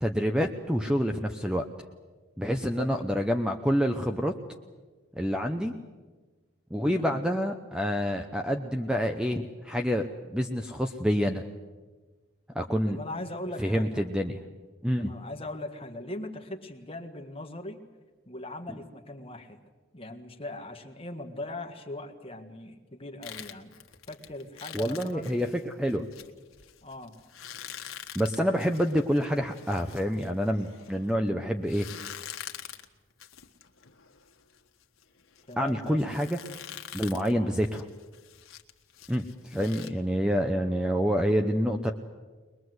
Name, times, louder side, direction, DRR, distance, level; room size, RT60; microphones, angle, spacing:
voice 1, 0.0-1.6 2.4-4.3 5.2-5.7 6.7-11.4 12.5-13.0 13.6-14.4 14.8-15.1 24.7-26.1 28.1-31.9 35.6-36.4 36.9-37.8 39.1-41.9, equal, 5° right, 5 dB, 0.8 m, -27 dB
voice 2, 6.9-7.2 12.8-14.1 15.0-17.8 18.2-19.6 19.9-23.8 24.1-25.3 26.8-27.2 35.5-36.2 37.3-37.6 39.5-39.9, left 1 dB, 25° left, 5 dB, 1.7 m, -40 dB
sound 1, 23.2-31.1 31.6-39.9, left 10 dB, 85° left, 1.5 m, -45 dB
22.5 x 21.5 x 8.0 m, 1.3 s
head